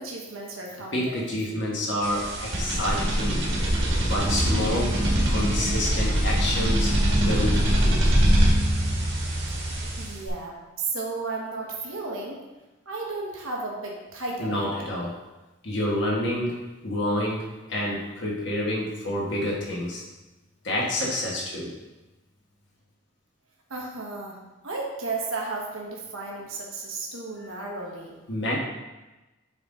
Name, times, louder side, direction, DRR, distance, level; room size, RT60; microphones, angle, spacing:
voice 1, 0.0-1.2 9.6-12.4 12.8-14.7 23.7-24.4 24.6-28.2, right 3 dB, 85° right, -1 dB, 1.2 m, -34 dB
voice 2, 0.9-3.4 4.0-5.0 5.3-8.0 14.4-15.1 15.6-20.0 20.6-21.7 28.3-28.6, left 1 dB, 60° left, -4 dB, 1.4 m, -28 dB
sound 1, 2.0-10.3, right 1 dB, 65° right, 1.4 m, -23 dB
8.0 x 3.7 x 3.8 m, 1.1 s
head